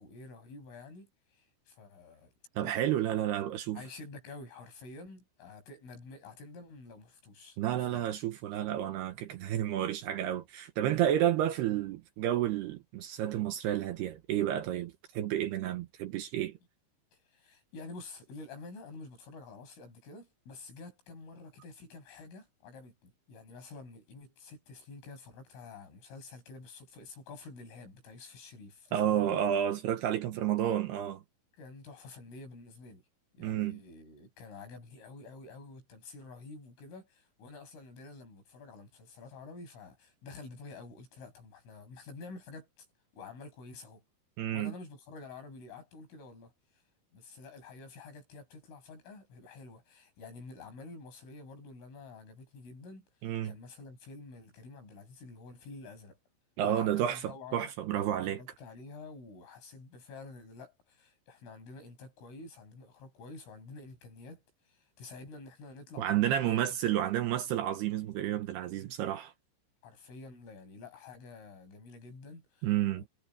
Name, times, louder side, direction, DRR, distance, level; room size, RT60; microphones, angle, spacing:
voice 1, 0.0-2.3 2.6-2.8 3.7-8.1 17.1-29.4 31.6-33.0 33.3-42.9 43.1-44.0 44.4-46.8 47.1-53.1 53.4-56.2 56.6-66.4 67.0-67.2 69.8-73.1, left 3 dB, 85° left, 10.5 m, -49 dB
voice 2, 2.6-3.8 7.6-16.5 28.9-31.2 33.4-33.8 44.4-44.7 53.2-53.6 56.6-58.4 66.0-69.3 72.6-73.0, right 11 dB, 70° right, 2.7 m, -31 dB
omnidirectional pair, 5.6 m